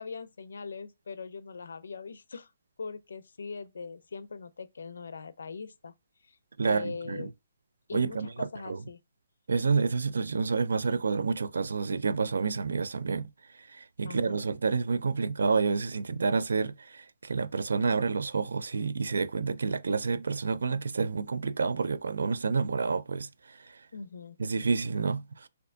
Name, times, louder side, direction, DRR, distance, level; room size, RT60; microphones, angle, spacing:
voice 1, 0.0-2.5 2.8-5.9 6.2-6.4 6.6-7.3 7.9-9.0 14.0-14.4 23.9-24.4, left 4 dB, 80° left, 0.4 m, -41 dB
voice 2, 6.6-7.3 7.9-8.8 9.5-13.3 13.6-23.8 24.4-25.5, right 4 dB, 85° right, 0.3 m, -29 dB
4.3 x 2.6 x 2.6 m
hypercardioid pair, 175°, 0 cm